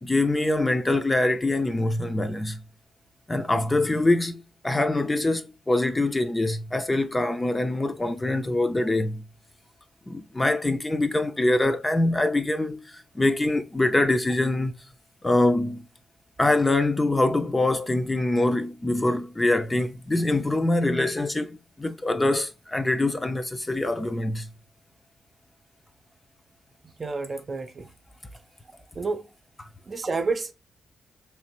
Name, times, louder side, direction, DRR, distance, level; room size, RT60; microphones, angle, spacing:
voice 1, 0.0-2.6 3.3-9.2 10.1-14.8 15.2-15.9 16.4-24.5 29.6-29.7, left 2 dB, 20° left, 0.7 m, -24 dB
voice 2, 26.8-27.9 29.0-29.2 29.9-30.5, right 4 dB, 45° right, 0.6 m, -29 dB
3.4 x 3.4 x 3.1 m
supercardioid pair, 55°, 0 cm